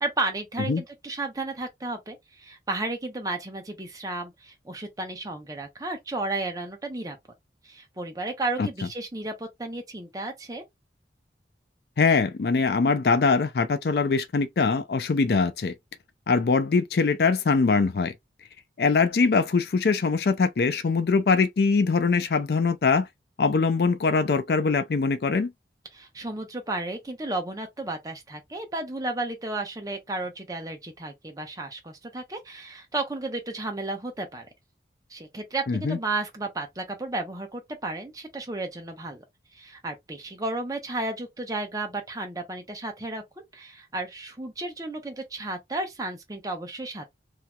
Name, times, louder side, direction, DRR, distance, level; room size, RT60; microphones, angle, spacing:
voice 1, 0.0-7.2 7.6-10.6 25.9-34.5 35.1-39.2 39.5-43.2 43.5-47.1, right 2 dB, 20° right, 0.9 m, -33 dB
voice 2, 12.0-15.7 16.3-18.1 18.8-23.1 23.4-25.5 35.7-36.0, left 4 dB, 60° left, 0.4 m, -22 dB
3.1 x 2.9 x 2.3 m
head